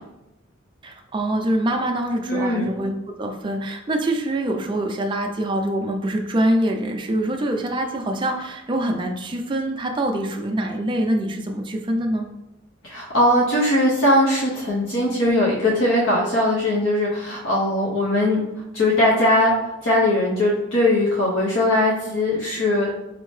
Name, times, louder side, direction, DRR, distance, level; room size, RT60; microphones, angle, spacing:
voice 1, 0.8-2.9 3.2-12.3, right 1 dB, 25° right, 3 dB, 0.4 m, -24 dB
voice 2, 2.3-2.7 12.8-18.4 18.7-19.5 19.8-23.0, left 1 dB, 70° left, -4 dB, 0.7 m, -20 dB
4.2 x 2.7 x 3.1 m, 0.95 s
head